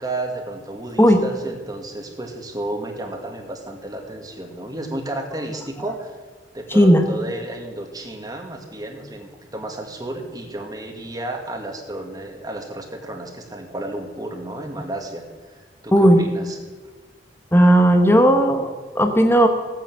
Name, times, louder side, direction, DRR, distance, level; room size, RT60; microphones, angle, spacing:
voice 1, 0.0-6.1 6.5-16.6, right 1 dB, 20° right, 3 dB, 1.8 m, -32 dB
voice 2, 6.7-7.0 15.9-16.2 17.5-19.5, equal, 15° left, 5 dB, 1.1 m, -14 dB
16.0 x 9.2 x 7.7 m, 1.4 s
head